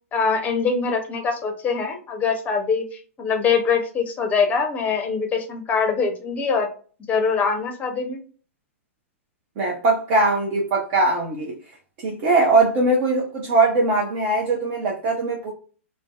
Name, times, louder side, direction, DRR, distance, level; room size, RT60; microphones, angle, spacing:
voice 1, 0.1-6.7 7.1-8.2, left 5 dB, 20° left, 0.6 m, -23 dB
voice 2, 9.6-11.5 12.0-15.5, right 2 dB, 45° right, 0.6 m, -20 dB
2.6 x 2.1 x 2.2 m
hypercardioid pair, 110°, 7 cm